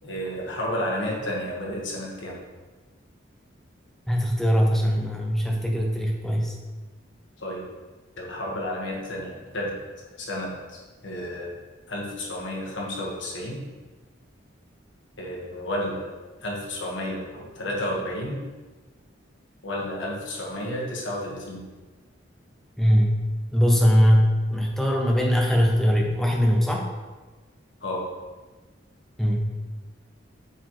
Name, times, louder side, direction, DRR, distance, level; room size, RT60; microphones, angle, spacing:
voice 1, 0.0-2.4 7.4-7.7 8.2-9.8 10.1-11.5 11.9-13.6 15.2-16.1 16.4-18.4 19.6-21.7 27.8-28.0, left 1 dB, 65° left, -3 dB, 1.5 m, -31 dB
voice 2, 4.1-6.5 22.8-23.2 23.5-26.9 29.2-29.5, equal, ahead, 0 dB, 0.7 m, -21 dB
8.0 x 4.3 x 3.2 m, 1.3 s
head